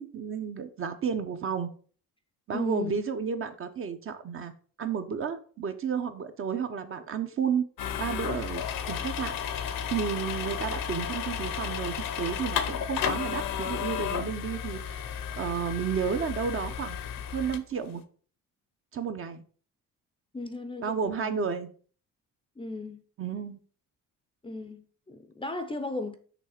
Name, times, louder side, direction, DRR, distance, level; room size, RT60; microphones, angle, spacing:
voice 1, 0.0-1.7 2.5-4.5 4.8-7.7 8.0-9.6 9.9-17.0 17.3-18.0 18.9-19.4 20.8-21.7 23.2-23.6, right 6 dB, 40° right, 0.7 m, -32 dB
voice 2, 2.5-3.0 20.3-21.5 22.6-23.0 24.4-26.1, left 2 dB, 15° left, 0.5 m, -36 dB
sound 1, 7.8-17.6, left 8 dB, 75° left, 0.8 m, -33 dB
6.1 x 3.3 x 5.7 m
cardioid pair, 135°, 33 cm